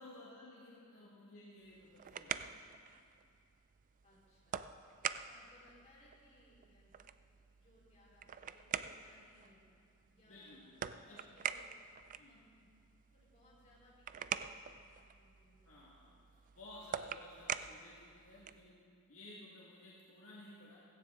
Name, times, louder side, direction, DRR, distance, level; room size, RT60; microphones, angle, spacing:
voice 1, 0.0-2.6 5.3-5.4 10.3-11.2 12.2-12.4 15.6-16.1 16.6-18.8 19.1-20.8, left 1 dB, 65° left, -6 dB, 2.0 m, -56 dB
sound 1, 1.6-18.7, right 8 dB, 35° right, 0.3 m, -46 dB
voice 2, 4.0-4.8 5.2-7.1 7.4-9.7 10.1-12.7 13.1-16.2, left 1 dB, 30° left, -6 dB, 3.9 m, -67 dB
16.5 x 15.0 x 3.7 m, 2.4 s
head